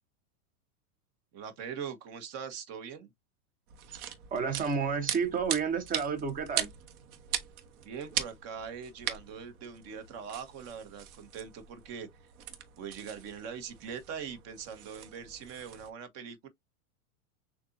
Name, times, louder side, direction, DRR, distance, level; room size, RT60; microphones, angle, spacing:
voice 1, 1.3-3.1 7.8-12.1 12.8-16.5, right 7 dB, 35° right, 1.2 m, -42 dB
sound 1, 3.7-15.9, right 10 dB, 75° right, 1.2 m, -40 dB
voice 2, 4.3-6.7, right 6 dB, 20° right, 0.9 m, -30 dB
6.7 x 2.6 x 2.6 m
supercardioid pair, 145°, 44 cm